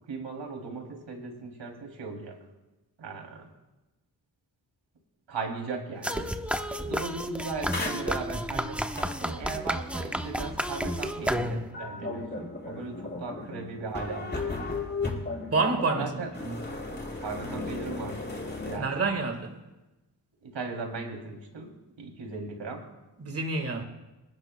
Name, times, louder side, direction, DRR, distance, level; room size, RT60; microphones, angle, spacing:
voice 1, 0.1-2.3 3.0-3.5 5.3-6.3 6.9-14.6 16.0-16.3 17.2-18.2 18.6-18.9 20.4-21.7 22.0-22.8, right 4 dB, 90° right, 1 dB, 2.9 m, -37 dB
sound 1, 6.0-11.8, equal, 5° right, 0.9 m, -31 dB
sound 2, 7.7-18.8, left 3 dB, 25° left, 3.7 m, -36 dB
voice 2, 15.5-16.1 16.4-16.6 18.8-19.5 23.2-23.8, right 3 dB, 35° right, 4 dB, 1.6 m, -27 dB
27.0 x 11.0 x 2.2 m, 1.1 s
cardioid pair, 65°, 43 cm